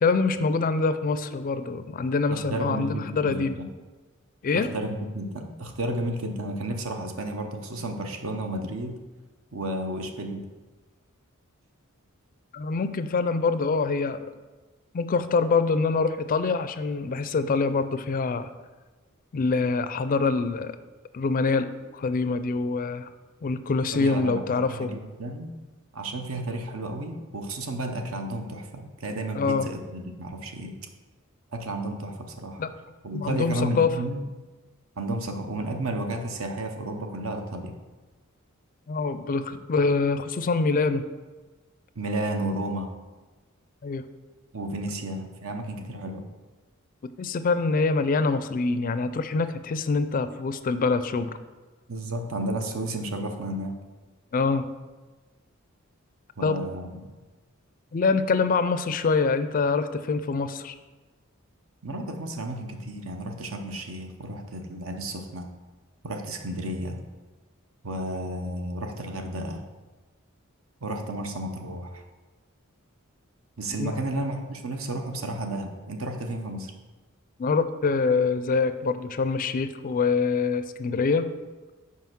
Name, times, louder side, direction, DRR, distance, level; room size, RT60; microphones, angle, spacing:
voice 1, 0.0-3.6 4.4-4.7 12.5-14.3 14.9-18.5 19.3-20.8 21.1-23.1 23.4-24.9 29.3-29.7 32.6-32.7 33.1-33.9 38.9-41.1 43.8-44.0 47.2-51.3 54.3-54.7 56.4-56.6 57.9-60.7 73.8-74.0 77.4-81.3, left 4 dB, 40° left, 12 dB, 0.4 m, -25 dB
voice 2, 2.3-3.7 4.5-9.0 9.5-10.5 23.9-25.5 25.9-30.7 31.5-32.7 33.0-34.2 35.0-37.7 42.0-42.9 44.5-46.2 51.9-53.8 56.4-57.1 61.8-65.5 66.0-67.0 67.8-69.6 70.8-72.0 73.6-76.7, right 1 dB, 70° right, 5 dB, 0.9 m, -32 dB
5.6 x 4.9 x 6.0 m, 1.3 s
head